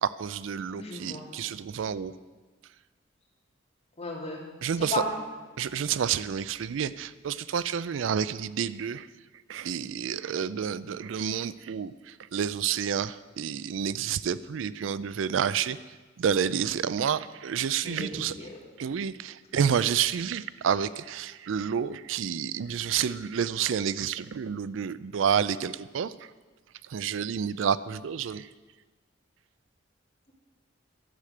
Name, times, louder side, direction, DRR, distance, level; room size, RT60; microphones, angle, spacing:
voice 1, 0.0-2.1 4.6-5.0 5.6-9.1 9.5-11.9 12.3-15.8 16.2-18.3 18.8-26.1 26.9-28.5, right 7 dB, 80° right, 17 dB, 0.4 m, -29 dB
voice 2, 0.7-1.3 4.0-4.4 4.9-5.0 17.8-18.5, left 2 dB, 35° left, -3 dB, 2.7 m, -34 dB
11.5 x 7.8 x 6.6 m, 1.3 s
head